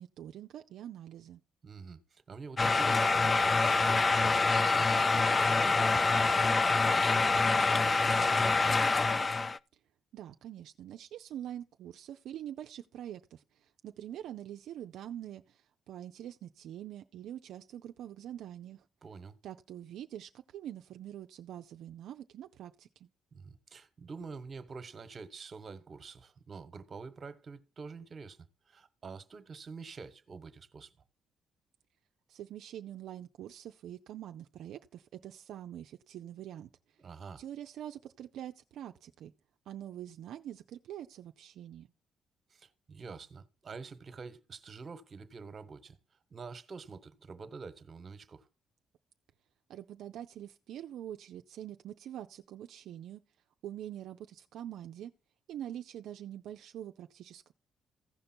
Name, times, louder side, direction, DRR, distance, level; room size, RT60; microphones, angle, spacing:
voice 1, 0.0-1.4 10.1-18.8 19.4-23.1 32.3-36.7 37.4-39.3 39.7-41.9 49.7-53.2 53.6-55.1 55.5-57.5, right 11 dB, 80° right, 0.5 m, -45 dB
voice 2, 1.6-6.3 6.7-8.8 19.0-19.4 23.3-28.4 28.7-30.9 37.0-37.4 42.5-46.0 46.3-48.5, right 4 dB, 40° right, 1.2 m, -47 dB
sound 1, 2.6-9.6, left 3 dB, 30° left, 0.4 m, -26 dB
15.0 x 5.2 x 4.3 m
cardioid pair, 90°, 0 cm